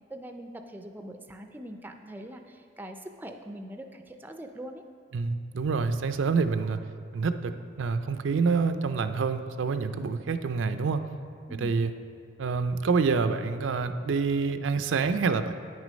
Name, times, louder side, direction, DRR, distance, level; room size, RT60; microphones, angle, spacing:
voice 1, 0.1-4.8 11.5-11.7, right 1 dB, 10° right, 5 dB, 0.4 m, -42 dB
voice 2, 5.1-6.8 7.1-11.0 11.6-11.9 12.4-15.5, right 4 dB, 80° right, 9 dB, 0.4 m, -27 dB
9.0 x 6.3 x 5.1 m, 2.4 s
head